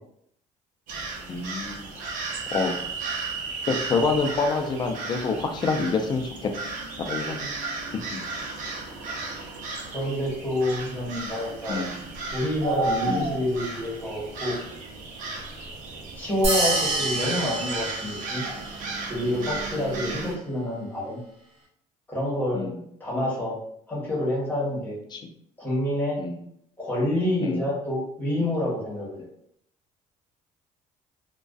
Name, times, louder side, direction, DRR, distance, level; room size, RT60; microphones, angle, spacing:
sound 1, 0.9-20.4, right 3 dB, 65° right, 0.6 m, -34 dB
voice 1, 1.3-1.9 2.5-2.7 3.7-6.5 7.1-7.5 11.7-11.9 13.1-13.3 22.5-22.8 25.1-25.2 26.2-26.4 27.4-27.6, left 4 dB, 30° left, 4 dB, 0.4 m, -27 dB
voice 2, 9.9-11.9 12.3-14.6 15.8-18.5 19.0-21.2 22.1-22.7 23.0-23.6 23.9-25.0 25.6-26.2 26.8-29.1, left 1 dB, 10° left, -6 dB, 1.1 m, -28 dB
sound 2, 16.4-18.7, right 1 dB, 50° right, 1.0 m, -27 dB
2.4 x 2.2 x 2.3 m, 0.70 s
cardioid pair, 115°, 14 cm